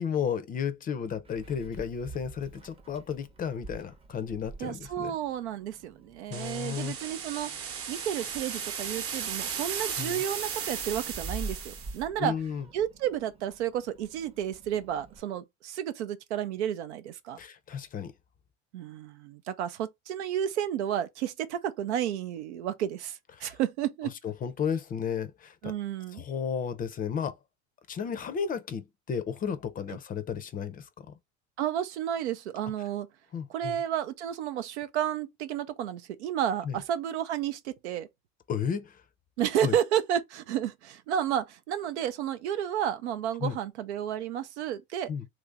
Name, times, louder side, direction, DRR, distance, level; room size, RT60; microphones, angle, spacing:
voice 1, 0.0-5.1 6.3-6.9 10.0-10.2 12.2-12.7 17.4-18.1 23.4-23.6 24.2-25.7 26.1-27.4 27.9-31.2 33.3-33.8 36.6-36.8 38.5-39.0 39.6-39.8 43.4-43.6 45.1-45.3, left 7 dB, 25° left, 0.5 m, -33 dB
Meow, 1.2-15.2, right 3 dB, 15° right, 0.7 m, -47 dB
voice 2, 4.6-12.3 12.7-17.4 18.7-24.1 25.6-26.2 31.6-33.1 33.5-38.1 39.4-45.1, right 10 dB, 90° right, 0.6 m, -31 dB
sound 1, 6.3-12.0, right 7 dB, 40° right, 0.9 m, -36 dB
3.0 x 2.6 x 3.4 m
supercardioid pair, 105°, 33 cm